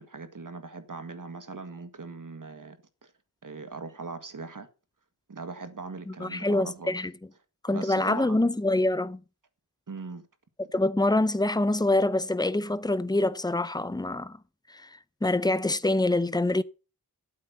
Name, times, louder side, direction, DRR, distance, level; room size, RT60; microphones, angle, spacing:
voice 1, 0.0-3.1 3.4-4.7 5.3-7.0 7.7-8.5 9.9-10.3, right 4 dB, 55° right, 1.9 m, -40 dB
voice 2, 6.2-7.1 7.6-9.2 10.7-14.4 14.7-14.9 15.2-16.6, left 2 dB, 10° left, 0.7 m, -25 dB
12.0 x 8.5 x 5.8 m
wide cardioid pair, 80°, 38 cm